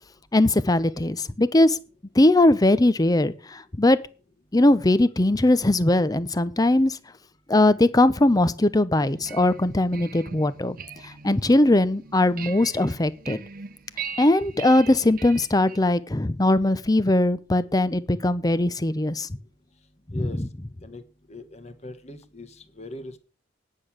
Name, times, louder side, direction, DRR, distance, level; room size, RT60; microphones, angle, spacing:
voice 1, 0.3-1.8 2.1-4.0 4.5-7.0 7.5-10.8 11.0-13.4 14.2-19.3 20.1-20.5, left 1 dB, 20° left, 0.7 m, -20 dB
sound 1, 9.0-15.8, right 6 dB, 50° right, 0.8 m, -41 dB
voice 2, 20.1-20.4 20.8-21.0 21.3-23.2, left 2 dB, 40° left, 1.5 m, -40 dB
10.0 x 6.6 x 7.3 m
head